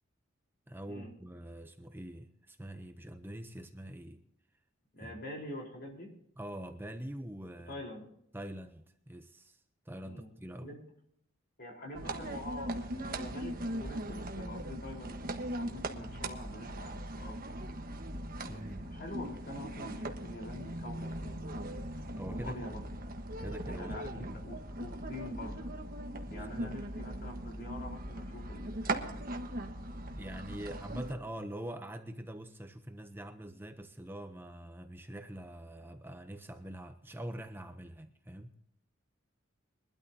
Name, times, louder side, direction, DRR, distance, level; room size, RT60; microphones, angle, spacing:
voice 1, 0.7-4.2 5.0-5.2 6.4-7.8 8.3-10.7 18.5-18.9 22.1-22.7 23.4-24.4 26.3-26.8 30.1-38.5, right 1 dB, 10° right, 7 dB, 0.7 m, -44 dB
voice 2, 4.9-6.1 7.7-8.0 10.0-10.3 10.6-10.8 11.6-17.4 18.4-21.8 22.3-22.8 23.7-25.7 26.3-29.2, left 1 dB, 50° left, -1 dB, 4.3 m, -45 dB
sound 1, 11.9-31.1, right 1 dB, 45° right, 1.3 m, -39 dB
22.5 x 12.5 x 2.8 m, 0.72 s
head